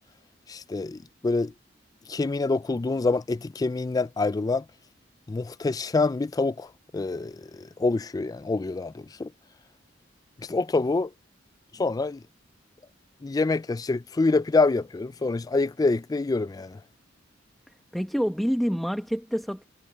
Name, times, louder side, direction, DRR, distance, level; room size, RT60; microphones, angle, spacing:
voice 1, 0.5-1.5 2.1-4.6 5.3-6.7 6.9-9.3 10.5-11.1 11.8-12.2 13.2-16.8, left 3 dB, 20° left, 0.3 m, -26 dB
voice 2, 17.9-19.6, equal, ahead, 1.2 m, -27 dB
head